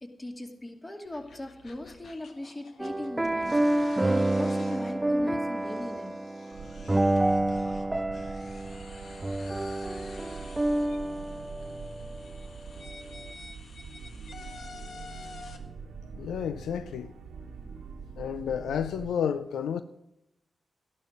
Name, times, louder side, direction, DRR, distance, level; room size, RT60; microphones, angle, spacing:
voice 1, 0.0-6.1, left 1 dB, 25° left, 2.5 m, -40 dB
sound 1, 1.0-15.6, left 4 dB, 70° left, 1.4 m, -50 dB
sound 2, 2.8-12.2, right 1 dB, 20° right, 0.4 m, -28 dB
sound 3, 6.5-19.1, right 5 dB, 90° right, 1.2 m, -44 dB
voice 2, 16.2-17.1 18.2-19.8, left 8 dB, 90° left, 0.4 m, -31 dB
12.0 x 11.5 x 5.2 m
cardioid pair, 50°, 0 cm